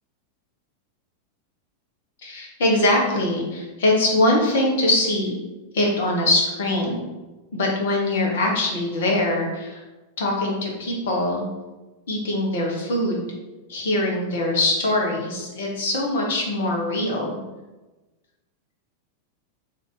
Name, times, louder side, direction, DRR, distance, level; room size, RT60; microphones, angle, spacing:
voice 1, 2.2-5.3 5.7-7.0 7.5-9.8 10.2-11.5 12.1-13.3 13.7-17.4, left 1 dB, 60° left, -1 dB, 1.1 m, -22 dB
3.5 x 2.8 x 4.0 m, 1.1 s
figure-of-eight pair, 90°, 0 cm